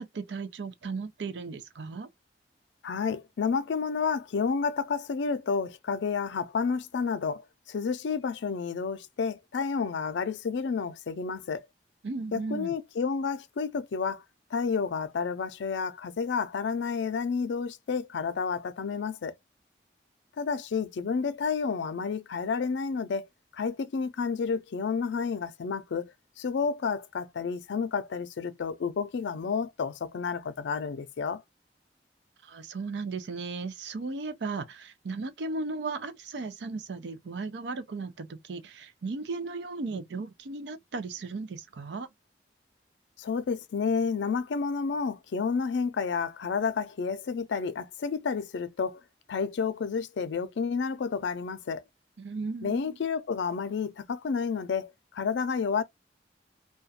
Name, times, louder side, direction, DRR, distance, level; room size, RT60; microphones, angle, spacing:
voice 1, 0.0-2.1 12.0-12.7 32.4-42.1 52.2-53.0, right 3 dB, 80° right, 0.5 m, -36 dB
voice 2, 2.8-11.7 12.3-14.2 14.5-19.3 20.4-23.3 23.5-31.4 43.2-49.0 49.3-51.8 52.6-55.8, left 5 dB, 85° left, 0.4 m, -30 dB
2.4 x 2.2 x 2.6 m
head